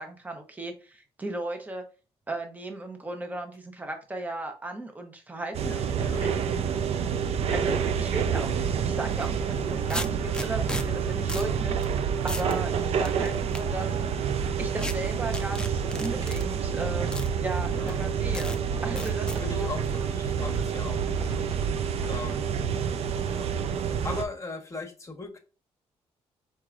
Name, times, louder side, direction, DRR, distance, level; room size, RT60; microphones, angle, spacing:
voice 1, 0.0-1.8 2.3-6.5 7.5-13.9 14.6-17.1 17.4-18.6 18.8-19.7, right 2 dB, 15° right, 4 dB, 0.9 m, -36 dB
sound 1, 5.5-24.2, right 7 dB, 65° right, 0.5 m, -28 dB
voice 2, 5.6-6.2 7.6-7.9 17.7-18.1 19.3-21.8 22.1-22.5 23.3-23.5 23.8-25.4, left 3 dB, 25° left, 4 dB, 1.1 m, -39 dB
sound 2, 9.1-9.3 9.9-10.8 11.3-11.5 11.8-11.9 12.3-12.5 13.0-13.6 14.8-14.9 15.3-16.4 17.1-17.3 17.9-18.0 18.3-18.6 19.0-19.4, left 2 dB, 10° left, 0.5 m, -34 dB
sound 3, 13.6-24.1, right 2 dB, 35° right, 1.1 m, -45 dB
4.6 x 4.3 x 2.4 m, 0.35 s
cardioid pair, 90°, 11 cm